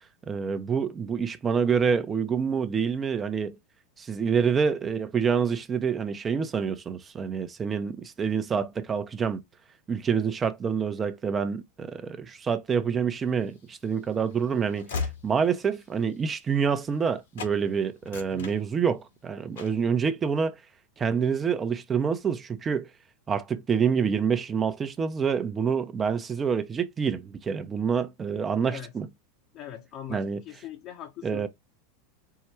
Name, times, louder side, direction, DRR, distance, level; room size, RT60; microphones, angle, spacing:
voice 1, 0.3-3.6 4.0-9.4 9.9-20.6 21.0-22.9 23.3-29.1 30.1-30.4 31.2-31.5, right 6 dB, 25° right, 0.7 m, -27 dB
Train / Slam, 13.5-17.1 17.3-17.6 17.9-19.1 19.5-19.9, left 5 dB, 80° left, 1.6 m, -38 dB
voice 2, 18.3-18.6 28.7-28.9 29.5-31.5, left 10 dB, 50° left, 0.9 m, -41 dB
4.7 x 2.2 x 4.4 m
hypercardioid pair, 100°, 0 cm